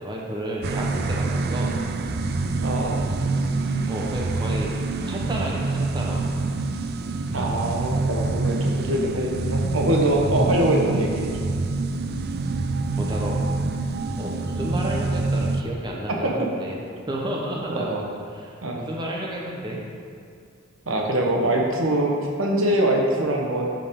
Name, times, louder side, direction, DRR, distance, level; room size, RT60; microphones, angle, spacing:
voice 1, 0.0-1.8 3.9-4.7 5.1-6.2 10.3-10.6 13.0-13.4 14.2-16.8 17.1-19.8, right 1 dB, 20° right, -3 dB, 1.0 m, -31 dB
sound 1, 0.6-15.6, right 3 dB, 50° right, 0.4 m, -26 dB
voice 2, 2.6-3.1 7.3-11.4 16.2-16.5 17.7-18.0 18.6-18.8 20.9-23.7, right 1 dB, 80° right, 0 dB, 1.2 m, -23 dB
11.5 x 5.1 x 3.7 m, 2.3 s
head